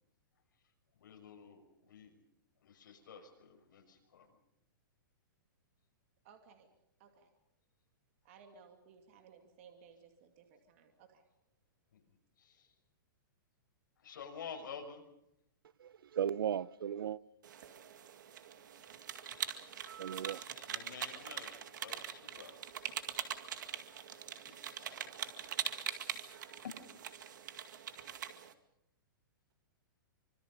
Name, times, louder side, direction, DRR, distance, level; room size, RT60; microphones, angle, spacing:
voice 1, 1.0-2.2 2.6-4.4 11.9-12.7 14.0-15.0 20.0-20.2 20.5-22.6 24.1-25.2 26.2-26.4 26.6-26.7, left 6 dB, 65° left, 6.1 m, -51 dB
voice 2, 6.2-6.7 7.0-7.3 8.2-11.2, right 6 dB, 35° right, 2.5 m, -60 dB
voice 3, 15.8-17.2 19.9-20.4, right 9 dB, 85° right, 0.8 m, -36 dB
sound 1, 17.4-28.5, right 9 dB, 60° right, 2.1 m, -43 dB
25.5 x 25.5 x 5.4 m
hypercardioid pair, 175°, 11 cm